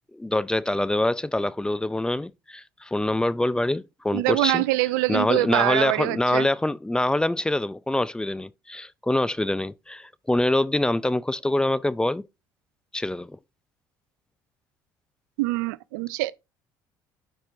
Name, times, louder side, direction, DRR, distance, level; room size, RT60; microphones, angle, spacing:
voice 1, 0.1-4.6 5.1-12.2 12.9-13.4, left 1 dB, 10° left, 0.3 m, -25 dB
voice 2, 4.1-6.5 15.4-16.3, right 19 dB, 85° right, 0.4 m, -24 dB
10.5 x 4.5 x 2.6 m
hypercardioid pair, 70°, 10 cm